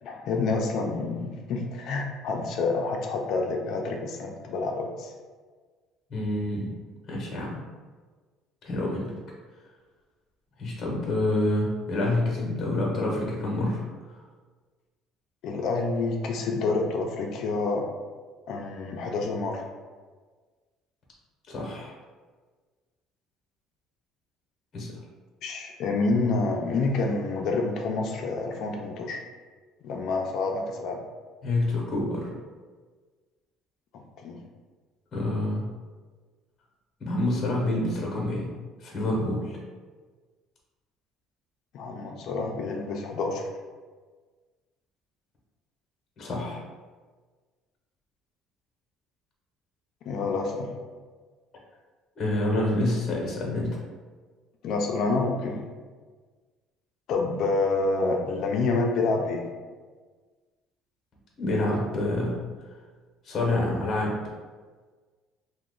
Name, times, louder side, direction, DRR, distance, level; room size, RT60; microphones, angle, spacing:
voice 1, 0.0-5.1 15.4-17.8 18.5-19.6 25.4-29.2 29.8-31.0 33.9-34.4 41.7-43.5 50.0-50.7 54.6-55.6 57.1-59.5, left 3 dB, 55° left, 2 dB, 0.4 m, -28 dB
voice 2, 6.1-6.7 7.1-7.6 8.6-9.1 10.6-13.8 21.5-21.9 24.7-25.0 31.4-32.3 35.1-35.6 37.0-38.5 38.8-39.6 46.2-46.6 52.2-53.7 61.4-62.4 63.2-64.1, left 1 dB, 35° left, -2 dB, 0.8 m, -27 dB
2.9 x 2.0 x 3.8 m, 1.4 s
cardioid pair, 150°, 0 cm